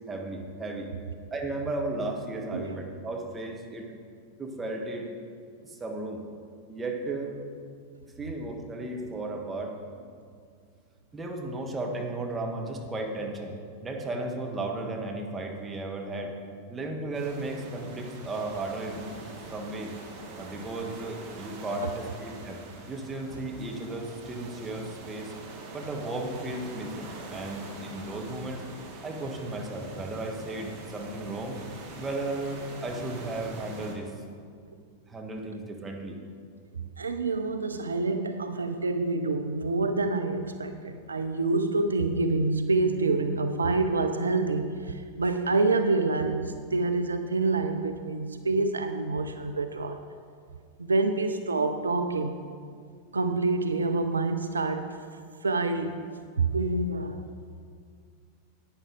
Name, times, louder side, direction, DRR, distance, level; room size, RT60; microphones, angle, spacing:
voice 1, 0.1-0.9 1.3-3.9 4.4-5.1 5.6-6.2 6.7-7.4 8.0-9.8 11.1-16.4 16.7-19.0 19.5-19.9 20.3-22.6 22.9-25.3 25.7-28.6 29.0-31.6 32.0-34.1 35.1-36.2, right 2 dB, 15° right, 1 dB, 1.4 m, -35 dB
sound 1, 17.1-33.9, right 2 dB, 45° right, 1.8 m, -44 dB
voice 2, 37.0-50.0 50.8-52.4 53.1-54.9 55.4-56.0 56.4-57.2, right 3 dB, 75° right, 8 dB, 0.5 m, -27 dB
11.0 x 9.3 x 3.8 m, 2.1 s
figure-of-eight pair, 90°, 0 cm